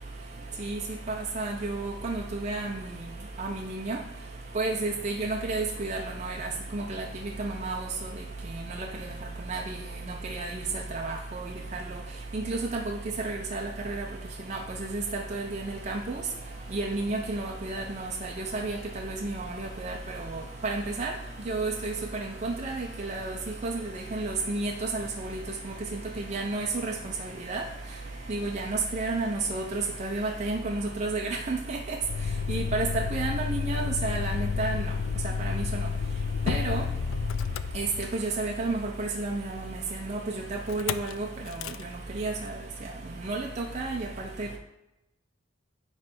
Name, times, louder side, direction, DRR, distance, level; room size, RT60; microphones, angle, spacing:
voice 1, 1.1-2.7 3.4-4.0 4.6-7.0 7.4-7.9 9.5-9.6 10.3-10.5 10.9-11.2 12.3-13.0 13.2-14.0 14.5-16.2 16.7-18.1 18.4-18.8 19.0-19.9 20.6-21.1 21.5-23.4 23.6-23.8 24.1-25.4 26.3-26.9 27.5-27.6 28.3-31.8 32.5-34.8 35.4-35.6 36.5-36.8 37.7-37.9 38.1-39.8 40.1-40.2 40.7-41.3 42.2-42.3 43.3-44.1 44.4-44.5, right 3 dB, 35° right, 1 dB, 0.5 m, -31 dB
sound 1, 15.6-30.5, equal, 55° left, 1.7 m, -52 dB
Motor vehicle (road), 32.0-38.4 40.7-41.1 41.5-41.8, left 6 dB, 85° left, 0.3 m, -30 dB
9.5 x 3.2 x 4.4 m, 0.91 s
head